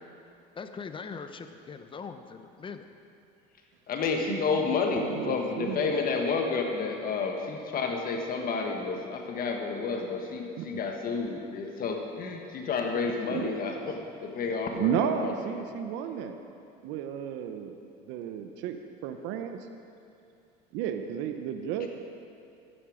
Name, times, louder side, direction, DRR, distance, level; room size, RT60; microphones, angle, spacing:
voice 1, 0.6-2.9, left 5 dB, 25° left, 8 dB, 0.8 m, -41 dB
voice 2, 3.9-15.6 21.8-21.9, left 4 dB, 45° left, 2 dB, 1.5 m, -30 dB
voice 3, 4.6-5.9 10.6-10.8 13.3-13.6 14.7-16.4 16.8-17.8 18.1-19.6 20.7-21.9, right 8 dB, 65° right, 7 dB, 0.8 m, -33 dB
13.0 x 9.9 x 5.1 m, 2.6 s
supercardioid pair, 100°, 21 cm